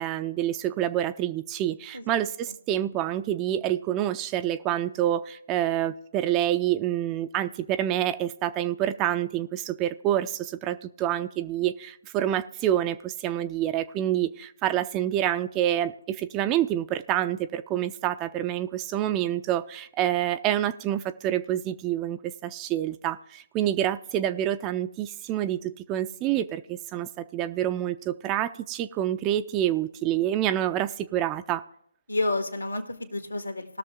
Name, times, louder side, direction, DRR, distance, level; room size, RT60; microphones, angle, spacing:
voice 1, 0.0-31.6, right 12 dB, 15° right, 11 dB, 0.4 m, -27 dB
voice 2, 32.1-33.8, left 2 dB, 80° left, 6 dB, 1.6 m, -30 dB
19.5 x 6.6 x 3.6 m, 0.69 s
figure-of-eight pair, 145°, 0 cm